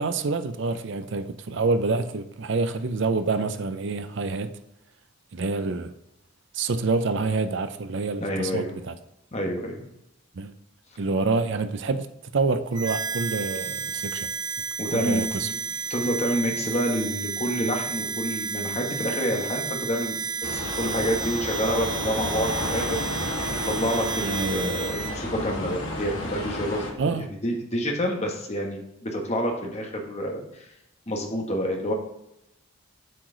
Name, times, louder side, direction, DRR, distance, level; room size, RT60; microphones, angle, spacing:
voice 1, 0.0-4.5 5.3-5.9 6.5-9.0 10.3-10.5 11.0-12.1 12.3-14.3 14.9-15.5 24.2-24.8 27.0-27.3, right 3 dB, 60° right, 0.5 m, -27 dB
voice 2, 8.2-8.7 9.3-9.8 14.8-15.6 15.9-20.2 20.5-23.0 23.6-30.7 31.1-31.9, equal, 30° left, 1.3 m, -28 dB
Harmonica, 12.7-25.2, right 6 dB, 20° right, 0.5 m, -32 dB
sound 1, 20.4-26.9, left 1 dB, 80° left, 2.0 m, -32 dB
7.7 x 4.8 x 3.9 m
head